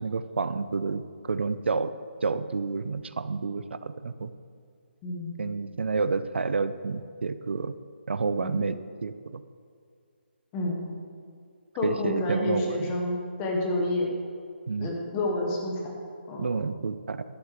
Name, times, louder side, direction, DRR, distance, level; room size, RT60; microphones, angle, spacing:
voice 1, 0.0-1.9 2.2-4.3 5.4-7.8 8.1-9.4 11.8-12.9 14.7-14.9 16.4-17.2, right 4 dB, 70° right, 13 dB, 0.5 m, -29 dB
voice 2, 5.0-5.3 8.4-8.6 10.5-10.8 11.8-14.2 14.8-16.0 16.3-16.5, left 2 dB, 10° left, 0 dB, 1.0 m, -29 dB
11.5 x 6.2 x 7.3 m, 2.3 s
hypercardioid pair, 175°, 6 cm